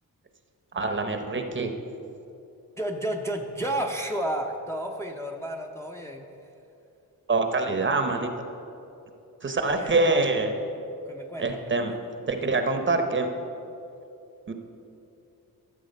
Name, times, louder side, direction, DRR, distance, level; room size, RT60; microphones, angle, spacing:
voice 1, 0.7-1.7 7.3-8.3 9.4-10.5 11.4-11.9 12.3-13.3 14.5-14.6, right 3 dB, 35° right, 6 dB, 0.8 m, -25 dB
voice 2, 2.8-6.2 9.6-10.3 11.1-12.0, right 1 dB, 10° left, 1 dB, 0.6 m, -32 dB
13.0 x 7.5 x 5.3 m, 2.8 s
wide cardioid pair, 145°, 35 cm